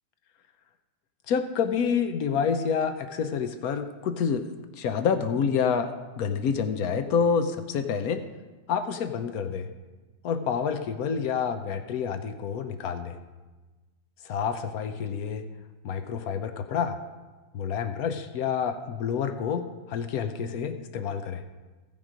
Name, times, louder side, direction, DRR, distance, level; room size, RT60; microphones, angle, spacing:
voice 1, 1.3-4.5 4.8-8.2 8.7-9.7 10.2-13.2 14.2-15.4 15.8-17.0 17.5-21.4, left 6 dB, 70° left, 8 dB, 0.9 m, -28 dB
16.0 x 7.3 x 5.1 m, 1.2 s
omnidirectional pair, 2.3 m